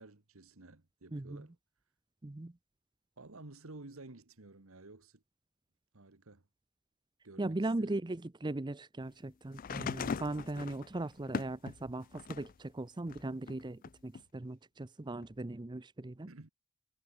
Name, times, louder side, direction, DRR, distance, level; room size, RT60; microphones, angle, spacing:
voice 1, 0.0-1.6 3.2-5.2 5.9-6.4 7.2-8.0 14.2-14.5 16.3-16.5, right 2 dB, 70° right, 1.6 m, -53 dB
voice 2, 1.1-1.4 2.2-2.5 7.4-16.3, right 2 dB, 20° right, 0.6 m, -38 dB
sound 1, 9.5-12.6 13.1-14.2 15.2-15.3, left 5 dB, 40° left, 0.4 m, -40 dB
head